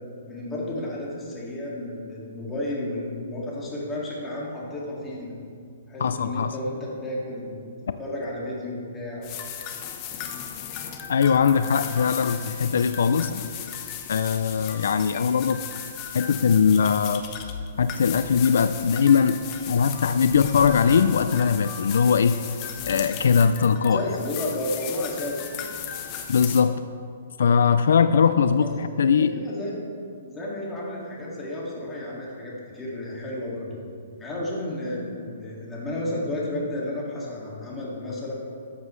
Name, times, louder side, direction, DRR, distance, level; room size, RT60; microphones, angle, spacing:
voice 1, 0.3-5.4 5.9-9.3 23.9-25.5 28.6-28.7 28.9-29.7 30.2-33.8 34.2-38.3, left 1 dB, 10° left, -5 dB, 2.1 m, -32 dB
voice 2, 6.0-6.5 11.1-13.5 14.1-15.6 16.1-17.2 17.8-22.4 22.9-24.0 26.3-26.8 27.4-29.3, left 6 dB, 75° left, 11 dB, 0.3 m, -21 dB
sound 1, 9.2-26.6, left 8 dB, 30° left, 0.8 m, -36 dB
13.0 x 7.4 x 3.2 m, 2.3 s
hypercardioid pair, 155°, 0 cm